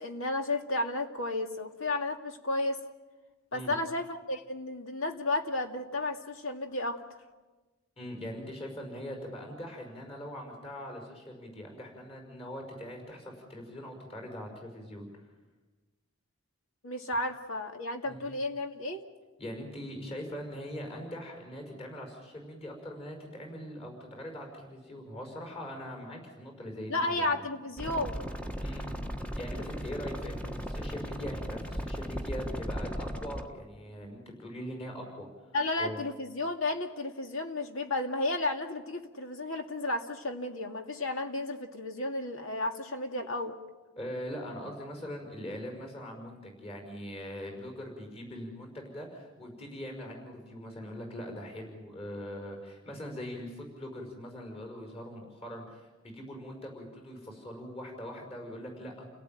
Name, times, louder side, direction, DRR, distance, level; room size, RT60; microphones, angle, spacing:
voice 1, 0.0-2.8 3.5-7.0 16.8-19.0 26.9-28.2 35.5-43.6, left 2 dB, 65° left, 4 dB, 2.3 m, -33 dB
voice 2, 8.0-15.1 18.0-18.2 19.4-27.3 28.6-28.9 29.4-35.5 35.8-36.0 44.0-59.0, equal, 25° left, 2 dB, 5.7 m, -42 dB
sound 1, 27.8-33.5, equal, 5° left, 1.3 m, -36 dB
30.0 x 18.0 x 9.1 m, 1.2 s
head